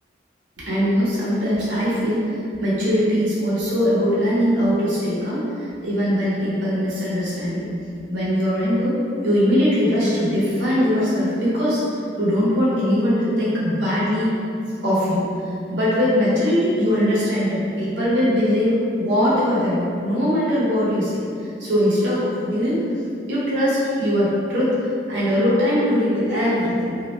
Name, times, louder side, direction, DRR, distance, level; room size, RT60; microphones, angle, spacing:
voice 1, 0.7-2.3 2.6-5.4 5.8-7.7 8.1-9.0 9.2-11.8 12.2-14.3 14.8-15.3 15.7-21.2 21.6-22.8 23.3-24.7 25.1-27.0, equal, 90° right, -8 dB, 0.8 m, -21 dB
2.3 x 2.1 x 2.9 m, 2.5 s
head